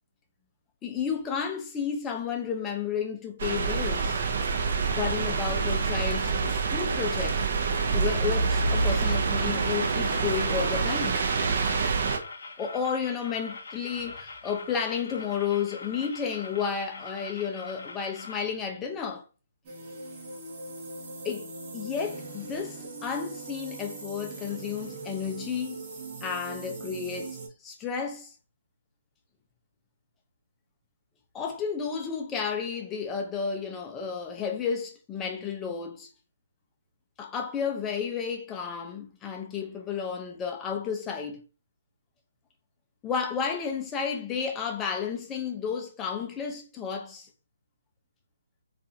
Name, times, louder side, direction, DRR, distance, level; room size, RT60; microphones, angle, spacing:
voice 1, 0.8-4.2 4.9-7.4 7.9-11.2 12.6-19.2 21.2-21.5 21.7-25.8 26.2-28.3 31.3-36.1 37.2-41.4 43.0-47.3, left 6 dB, 15° left, 0.5 m, -32 dB
sound 1, 3.4-12.2, right 4 dB, 50° right, 0.6 m, -26 dB
sound 2, 8.6-18.4, left 3 dB, 65° left, 0.6 m, -43 dB
sound 3, 19.6-27.5, right 3 dB, 30° right, 0.9 m, -41 dB
2.4 x 2.4 x 2.7 m
hypercardioid pair, 150°, 0 cm